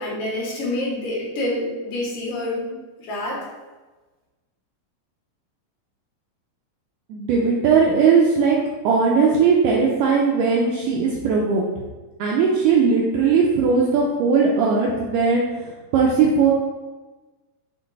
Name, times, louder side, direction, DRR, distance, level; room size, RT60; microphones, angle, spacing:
voice 1, 0.0-2.7 3.0-3.5, left 1 dB, 70° left, -4 dB, 2.5 m, -27 dB
voice 2, 7.1-8.6 8.8-11.7 12.2-16.5, right 5 dB, 85° right, -2 dB, 1.8 m, -18 dB
6.2 x 2.2 x 3.8 m, 1.2 s
omnidirectional pair, 4.1 m